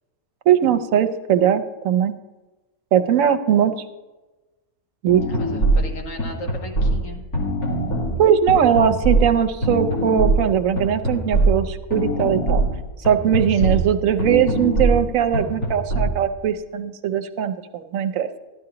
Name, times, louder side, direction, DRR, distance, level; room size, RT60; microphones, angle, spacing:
voice 1, 0.5-2.1 2.9-3.7 5.0-5.2 8.2-12.6 13.0-18.3, right 9 dB, 70° right, 9 dB, 1.0 m, -19 dB
sound 1, 5.1-16.1, right 2 dB, 85° left, 2.5 m, -22 dB
voice 2, 5.3-7.2 13.5-13.8, left 1 dB, 65° left, 1 dB, 1.7 m, -36 dB
14.0 x 10.5 x 2.9 m, 1.2 s
omnidirectional pair, 1.5 m